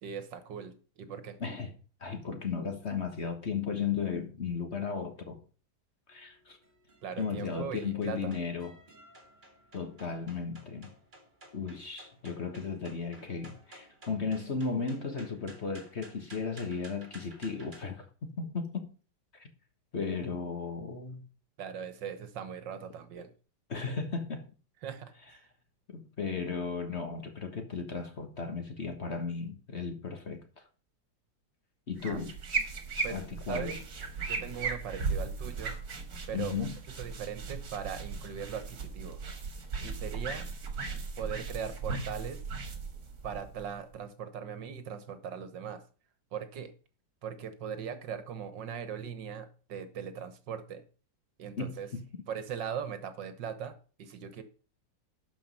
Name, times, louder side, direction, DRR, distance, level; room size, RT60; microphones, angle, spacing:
voice 1, 0.0-1.4 7.0-8.3 21.6-23.3 24.8-25.4 32.0-32.3 33.0-33.2 33.5-33.8 34.3-35.8 36.3-36.7 37.0-39.2 39.8-40.5 41.2-42.4 43.2-45.8 46.3-46.7 47.2-50.8 51.4-51.9 52.3-54.4, right 7 dB, 75° right, 1.8 m, -39 dB
voice 2, 1.4-1.7 2.0-5.4 6.1-6.6 7.2-8.7 9.7-10.9 11.5-18.9 19.3-19.5 19.9-21.2 23.7-24.4 25.9-30.4 31.9-32.3 33.1-33.7 36.3-36.8 51.6-51.7, left 5 dB, 40° left, 1.5 m, -35 dB
sound 1, 6.1-17.8, right 1 dB, 25° right, 2.3 m, -55 dB
sound 2, 32.0-43.9, right 4 dB, 55° right, 2.1 m, -37 dB
12.0 x 5.2 x 5.4 m
omnidirectional pair, 2.0 m